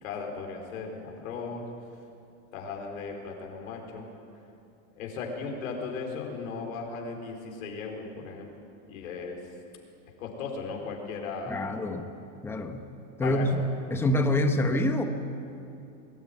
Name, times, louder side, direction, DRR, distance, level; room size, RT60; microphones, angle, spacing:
voice 1, 0.0-1.7 2.5-4.1 4.9-8.5 8.9-9.4 10.2-11.7 13.2-13.7, left 4 dB, 80° left, 1 dB, 4.3 m, -37 dB
voice 2, 11.5-12.1 12.4-12.8 13.2-13.5 13.9-15.0, left 1 dB, 5° left, 5 dB, 0.9 m, -26 dB
21.0 x 13.5 x 9.4 m, 2.7 s
supercardioid pair, 165°, 41 cm